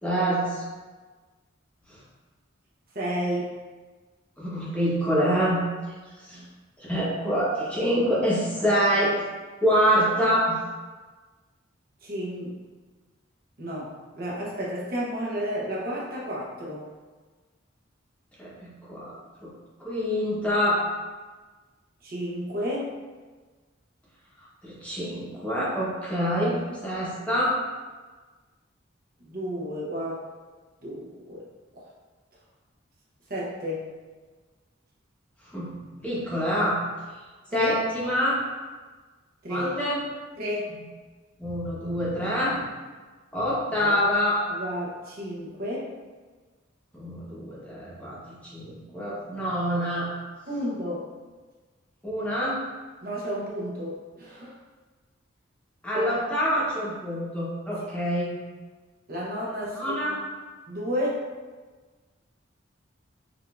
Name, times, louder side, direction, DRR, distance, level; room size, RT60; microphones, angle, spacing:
voice 1, 0.0-0.6 1.9-2.0 4.4-5.6 6.3-6.4 6.8-9.1 9.6-10.6 18.4-19.1 19.4-19.5 19.8-20.8 24.4-27.5 35.5-35.7 36.0-36.8 37.5-38.4 39.5-40.0 41.4-42.7 43.3-44.4 46.9-50.1 52.0-52.6 55.8-58.4 59.8-60.2, equal, 5° left, -8 dB, 0.8 m, -26 dB
voice 2, 2.9-3.5 6.3-6.5 12.0-12.6 13.6-16.9 22.0-23.0 29.2-30.2 30.8-31.4 31.8-31.9 33.3-33.9 37.5-37.7 39.4-39.7 40.4-40.8 43.8-43.9 44.5-45.9 50.5-51.0 53.0-54.6 55.9-56.1 59.1-60.2 60.7-61.3, equal, 50° right, -5 dB, 0.8 m, -32 dB
4.8 x 2.5 x 2.3 m, 1.4 s
head